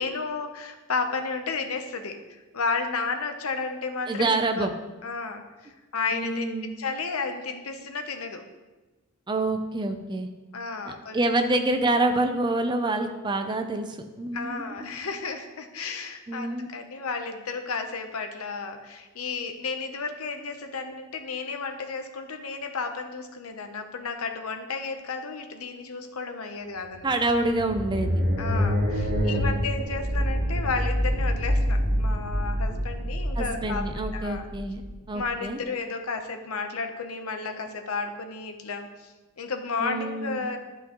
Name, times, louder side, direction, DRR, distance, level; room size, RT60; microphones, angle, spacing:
voice 1, 0.0-4.7 5.0-8.4 10.5-11.2 14.3-27.2 28.4-33.8 34.1-34.5 35.1-40.6, left 4 dB, 85° left, 6 dB, 0.8 m, -33 dB
voice 2, 4.1-4.7 6.1-6.7 9.3-10.3 11.1-14.6 16.3-16.7 27.0-28.1 29.1-29.7 33.4-34.8 35.1-35.6 39.8-40.5, right 2 dB, 20° right, 6 dB, 0.5 m, -27 dB
sound 1, 26.9-35.3, equal, 45° right, 1.3 m, -26 dB
11.5 x 5.9 x 3.0 m, 1.2 s
head